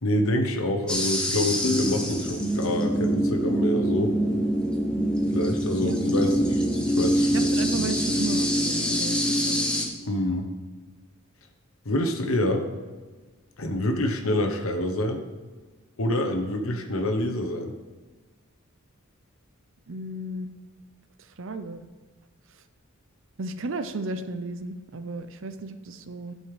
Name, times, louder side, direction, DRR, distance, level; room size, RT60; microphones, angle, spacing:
voice 1, 0.0-4.1 5.3-6.6 7.0-7.5 10.0-10.5 11.8-12.7 13.6-15.2 16.0-17.7, left 1 dB, 65° left, 4 dB, 1.1 m, -26 dB
sound 1, 0.9-9.9, equal, 5° left, 1.0 m, -25 dB
sound 2, 1.6-5.1, left 2 dB, 40° left, 0.7 m, -34 dB
voice 2, 5.8-6.3 7.3-9.2 9.4-9.6 10.2-10.4 19.9-20.5 21.4-21.8 23.4-26.3, right 2 dB, 60° right, 10 dB, 0.6 m, -34 dB
11.5 x 5.5 x 5.0 m, 1.3 s
head